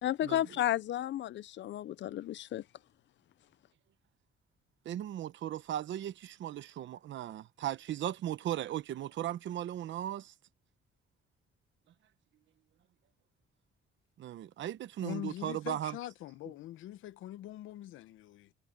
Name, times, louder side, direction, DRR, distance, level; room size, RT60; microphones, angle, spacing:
voice 1, 0.0-2.6, left 12 dB, 65° left, 0.7 m, -33 dB
voice 2, 4.8-10.3 14.2-16.0, right 12 dB, 70° right, 1.0 m, -37 dB
voice 3, 15.0-18.5, left 13 dB, 85° left, 1.0 m, -43 dB
cardioid pair, 90°, 20 cm